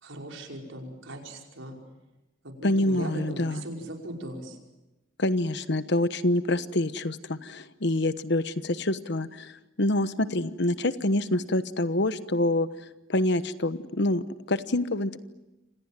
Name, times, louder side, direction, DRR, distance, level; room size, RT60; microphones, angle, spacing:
voice 1, 0.0-1.8 2.4-4.6, right 1 dB, 75° right, 2 dB, 5.4 m, -39 dB
voice 2, 2.6-3.6 5.2-12.7 13.1-15.2, left 1 dB, 60° left, 13 dB, 1.1 m, -26 dB
29.5 x 26.0 x 7.5 m, 1.0 s
head